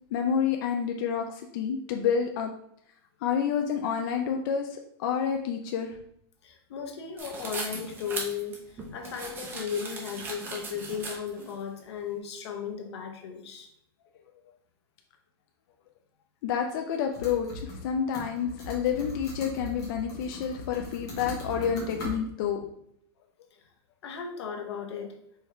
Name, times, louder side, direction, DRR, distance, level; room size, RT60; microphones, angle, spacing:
voice 1, 0.1-2.5 3.2-6.0 16.4-22.6, left 7 dB, 50° left, 3 dB, 0.4 m, -29 dB
voice 2, 6.4-13.7 23.5-23.6 24.0-25.2, left 7 dB, 85° left, 4 dB, 1.0 m, -36 dB
sound 1, 7.2-11.5, right 3 dB, 15° right, 0.7 m, -38 dB
sound 2, 17.1-17.9 18.1-22.1, left 1 dB, 25° left, 1.3 m, -39 dB
4.6 x 3.4 x 3.2 m, 0.71 s
supercardioid pair, 165°, 14 cm